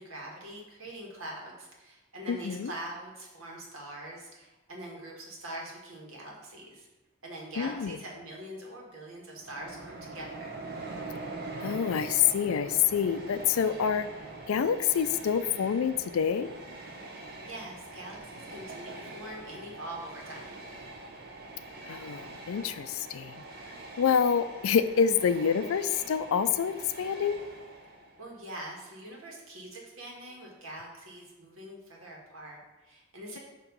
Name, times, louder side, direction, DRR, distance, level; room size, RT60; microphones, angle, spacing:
voice 1, 0.0-6.9 7.2-10.6 17.4-20.6 27.9-33.4, right 1 dB, 80° right, -2 dB, 1.6 m, -43 dB
voice 2, 2.3-2.7 7.6-8.0 11.6-14.1 14.5-16.5 21.9-23.4 24.0-27.4, left 7 dB, 85° left, 12 dB, 0.4 m, -27 dB
Train, 9.3-28.2, right 2 dB, 45° right, 0.7 m, -43 dB
7.1 x 3.0 x 5.3 m, 1.1 s
head